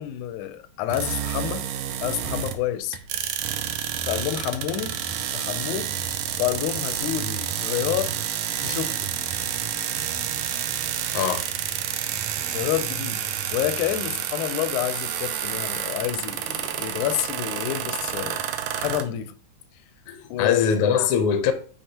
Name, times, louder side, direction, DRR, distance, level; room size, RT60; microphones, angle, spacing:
voice 1, 0.0-1.7 2.0-3.0 4.0-5.0 5.3-5.9 6.4-8.2 8.6-9.1 12.5-13.2 13.5-18.4 18.8-19.3 20.3-20.7, left 12 dB, 90° left, 2.1 m, -28 dB
sound 1, 0.9-2.7 2.9-19.0, right 9 dB, 75° right, 1.6 m, -29 dB
voice 2, 20.1-21.5, left 7 dB, 70° left, 1.4 m, -22 dB
8.9 x 4.8 x 2.8 m
omnidirectional pair, 3.4 m